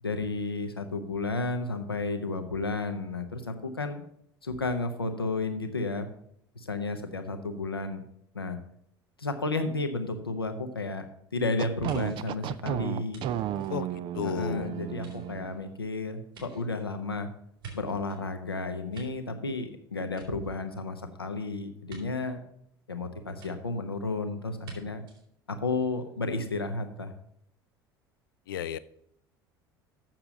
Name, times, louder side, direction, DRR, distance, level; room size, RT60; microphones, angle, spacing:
voice 1, 0.0-4.0 4.4-6.1 6.6-8.0 8.3-8.6 9.2-11.1 11.3-13.2 14.2-17.3 17.7-22.4 22.9-25.0 25.5-27.1, left 3 dB, 85° left, 1.0 m, -32 dB
sound 1, 11.6-15.7, right 11 dB, 45° right, 0.5 m, -33 dB
sound 2, 11.8-14.4 14.9-18.2 18.7-19.7 20.0-20.9 21.9-22.0 23.4-23.5 24.6-24.8 25.1-25.2, right 5 dB, 70° right, 3.6 m, -49 dB
voice 2, 14.1-14.7 28.5-28.8, left 10 dB, 70° left, 0.5 m, -33 dB
7.5 x 6.9 x 7.5 m
figure-of-eight pair, 65°, 12 cm